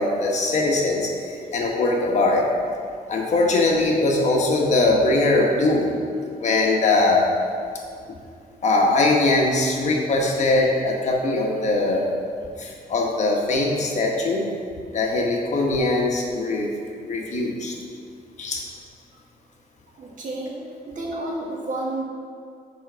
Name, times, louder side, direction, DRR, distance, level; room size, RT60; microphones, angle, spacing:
voice 1, 0.0-2.5 3.1-5.9 6.3-7.3 8.6-12.0 12.6-14.5 14.9-16.7 17.0-17.8 18.4-18.6, left 2 dB, 50° left, -1 dB, 1.2 m, -21 dB
voice 2, 20.0-20.6 20.9-22.0, right 2 dB, 55° right, -2 dB, 1.5 m, -30 dB
6.1 x 5.0 x 6.1 m, 2.3 s
cardioid pair, 140°, 16 cm